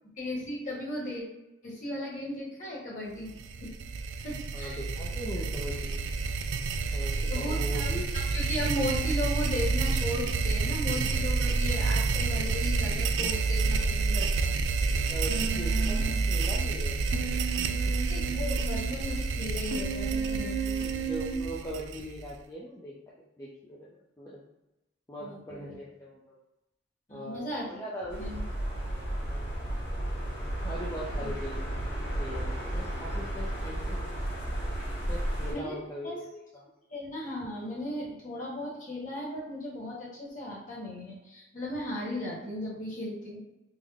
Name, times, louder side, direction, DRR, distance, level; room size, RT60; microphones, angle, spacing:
voice 1, 0.2-1.2 1.6-3.3 3.6-3.7 4.2-4.8 6.9-7.0 7.3-7.9 8.3-14.5 18.1-20.9 25.2-25.8 27.1-27.8 28.2-28.4 31.2-31.3 35.5-35.8 36.0-36.1 36.9-43.4, left 1 dB, 45° left, -5 dB, 1.3 m, -36 dB
sound 1, 3.3-22.3, right 4 dB, 85° right, 0.3 m, -29 dB
voice 2, 4.5-6.0 6.9-8.1 14.7-17.0 17.7-17.8 18.5-18.7 20.8-23.9 24.2-24.4 25.1-26.3 27.1-28.3 28.7-29.5 30.6-34.1 35.1-36.7, equal, 20° left, -6 dB, 0.4 m, -41 dB
Human voice, 15.3-16.1 17.1-18.9 19.7-21.3, right 6 dB, 60° right, 0.8 m, -34 dB
sound 2, 28.1-35.5, right 1 dB, 75° left, 1.4 m, -33 dB
3.6 x 2.0 x 3.5 m, 0.95 s
head